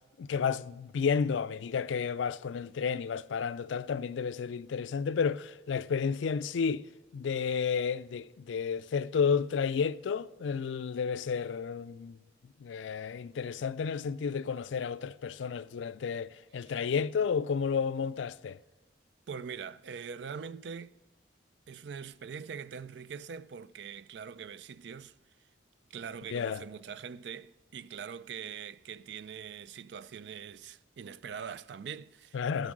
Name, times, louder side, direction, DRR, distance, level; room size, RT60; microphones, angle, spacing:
voice 1, 0.2-6.8 7.1-12.2 12.6-18.6 26.3-26.6 32.3-32.7, left 6 dB, 80° left, 0.4 m, -31 dB
voice 2, 19.3-20.9 21.7-25.1 25.9-32.7, right 7 dB, 65° right, 0.4 m, -43 dB
15.0 x 5.3 x 6.1 m
head